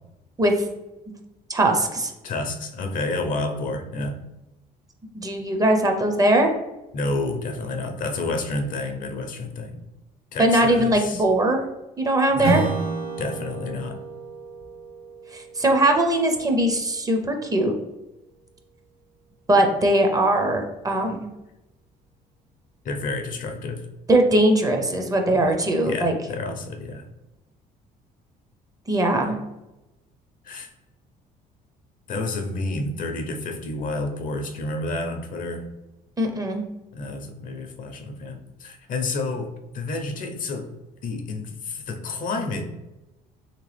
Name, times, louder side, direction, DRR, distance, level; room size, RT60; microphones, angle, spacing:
voice 1, 1.5-2.1 5.1-6.5 10.4-11.6 12.0-12.6 15.3-17.7 19.5-21.3 24.1-26.1 28.9-29.4 36.2-36.6, right 1 dB, 20° right, 4 dB, 0.5 m, -20 dB
voice 2, 2.2-4.2 6.9-9.8 10.3-11.2 12.3-12.7 13.2-14.0 22.8-23.9 25.3-25.6 25.8-27.0 30.4-30.7 32.1-35.7 36.9-40.7 41.0-42.7, left 2 dB, 55° left, 5 dB, 0.6 m, -30 dB
Strum, 12.4-17.4, right 3 dB, 75° right, 0.8 m, -31 dB
3.3 x 2.9 x 3.2 m, 0.98 s
cardioid pair, 110°, 17 cm